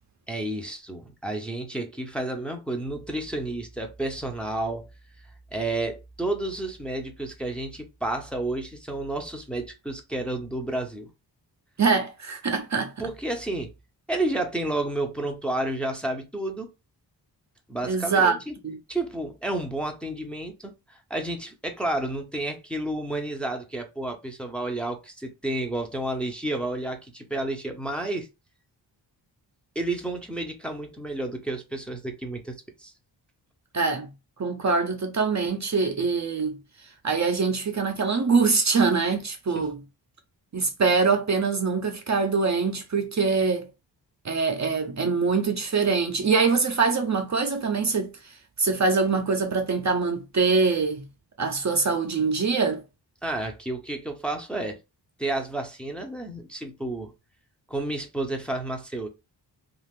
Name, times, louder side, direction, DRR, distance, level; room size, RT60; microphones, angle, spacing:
voice 1, 0.3-4.9 5.5-11.1 13.0-13.7 14.1-16.7 17.7-18.5 18.9-28.3 29.7-32.9 39.5-39.7 53.2-54.8 55.2-57.1 57.7-59.1, right 2 dB, 5° left, 0.6 m, -31 dB
voice 2, 11.8-12.9 17.8-18.4 18.6-18.8 33.7-34.1 34.4-36.6 37.0-39.8 40.5-43.7 44.2-51.0 51.4-52.8, right 4 dB, 40° right, 0.6 m, -24 dB
2.4 x 2.4 x 3.5 m
cardioid pair, 70°, 43 cm